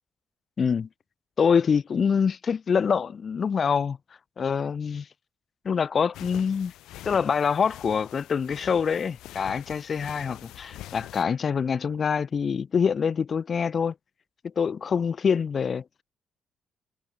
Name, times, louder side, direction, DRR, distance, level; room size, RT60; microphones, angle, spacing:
voice 1, 0.6-0.9 1.4-4.0 4.4-5.1 5.6-6.7 7.0-13.9 14.6-15.8, left 6 dB, 45° left, 1.0 m, -25 dB
sound 1, 6.1-11.2, left 15 dB, 90° left, 1.0 m, -44 dB
cardioid pair, 90°, 0 cm